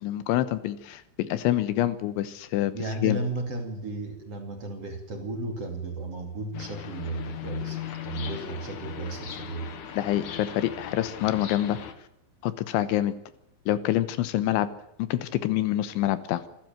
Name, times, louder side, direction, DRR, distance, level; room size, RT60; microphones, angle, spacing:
voice 1, 0.0-2.7 3.0-3.2 9.9-11.8 12.4-13.1 13.7-14.7 15.0-16.4, left 13 dB, 80° left, 14 dB, 3.3 m, -26 dB
voice 2, 2.7-9.7, right 2 dB, 35° right, 4 dB, 3.0 m, -34 dB
sound 1, 6.5-11.9, left 9 dB, 60° left, 2.0 m, -38 dB
26.5 x 12.5 x 9.1 m, 0.80 s
omnidirectional pair, 5.6 m